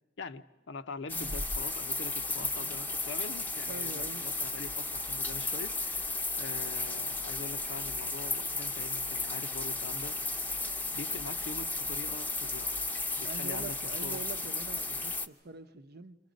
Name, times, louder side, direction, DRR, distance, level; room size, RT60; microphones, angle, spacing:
voice 1, 0.2-6.1 6.4-10.2 10.9-12.8 13.2-14.2, left 4 dB, 65° left, 0.7 m, -44 dB
sound 1, 1.1-15.3, left 3 dB, 10° left, 0.7 m, -34 dB
voice 2, 2.3-2.8 3.7-4.2 13.2-16.2, right 4 dB, 55° right, 0.8 m, -45 dB
28.5 x 26.0 x 5.2 m
head